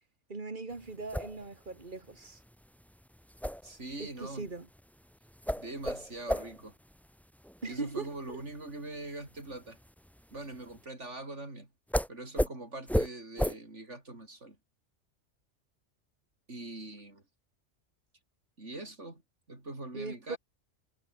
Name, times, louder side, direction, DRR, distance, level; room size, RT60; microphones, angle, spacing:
voice 1, 0.3-2.4 4.0-4.7 7.6-8.4 19.9-20.4, right 3 dB, 45° right, 2.5 m, -40 dB
sound 1, 0.7-10.8 11.9-12.1 12.4-12.5 12.9-13.1 13.4-13.5, equal, ahead, 1.7 m, -35 dB
voice 2, 3.6-4.5 5.6-6.8 7.7-9.8 10.3-11.7 12.1-14.6 16.5-17.2 18.6-19.2 19.5-20.4, right 2 dB, 75° right, 5.9 m, -42 dB
omnidirectional pair, 1.2 m